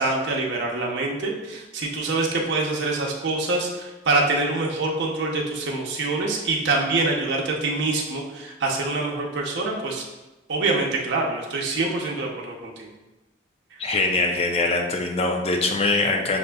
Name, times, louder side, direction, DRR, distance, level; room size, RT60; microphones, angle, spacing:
voice 1, 0.0-10.0 10.5-12.9, right 3 dB, 80° right, -1 dB, 0.7 m, -25 dB
voice 2, 13.8-16.4, left 3 dB, 35° left, 2 dB, 0.4 m, -23 dB
6.5 x 2.5 x 2.2 m, 1.1 s
head